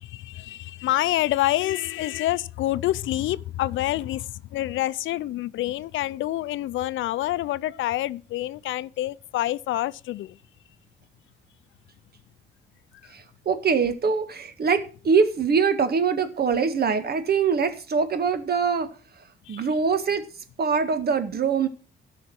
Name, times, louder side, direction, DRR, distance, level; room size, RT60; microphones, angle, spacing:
voice 1, 0.0-10.4 19.5-19.6, left 15 dB, 90° left, 0.5 m, -27 dB
voice 2, 13.1-18.9 19.5-20.2 20.6-21.7, right 5 dB, 55° right, 1.7 m, -23 dB
12.5 x 5.8 x 7.6 m
cardioid pair, 95°, 19 cm